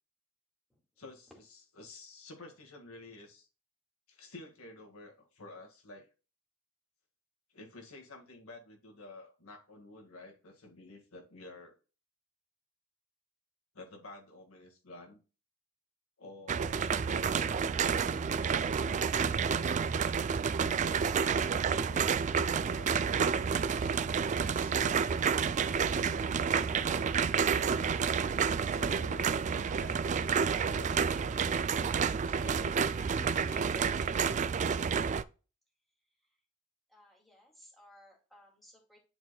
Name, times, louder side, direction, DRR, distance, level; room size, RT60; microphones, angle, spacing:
voice 1, 1.0-3.5 4.1-6.1 7.5-11.8 13.7-15.2 16.2-19.5 20.5-23.9 24.4-26.2 26.5-27.7 28.7-30.0 30.6-34.5, left 2 dB, 70° left, 1.7 m, -51 dB
sound 1, 16.5-35.2, right 6 dB, 35° right, 0.3 m, -30 dB
voice 2, 36.9-39.0, equal, ahead, 2.2 m, -60 dB
11.0 x 4.0 x 2.2 m
head